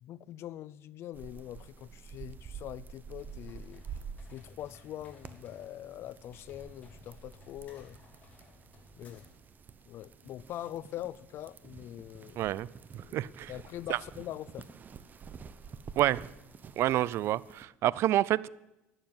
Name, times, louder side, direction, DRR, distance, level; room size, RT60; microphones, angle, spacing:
voice 1, 0.0-3.9 4.3-8.0 9.0-9.2 9.9-12.5 12.9-14.7, left 12 dB, 60° left, 0.5 m, -43 dB
sound 1, 1.1-17.6, right 6 dB, 35° right, 0.9 m, -49 dB
sound 2, 3.1-9.5, left 3 dB, 30° left, 5.8 m, -58 dB
voice 2, 12.4-12.7 13.1-13.5 13.9-14.0 16.0-16.2 16.8-18.5, right 14 dB, 60° right, 0.4 m, -28 dB
12.0 x 7.4 x 9.4 m
supercardioid pair, 90°, 5 cm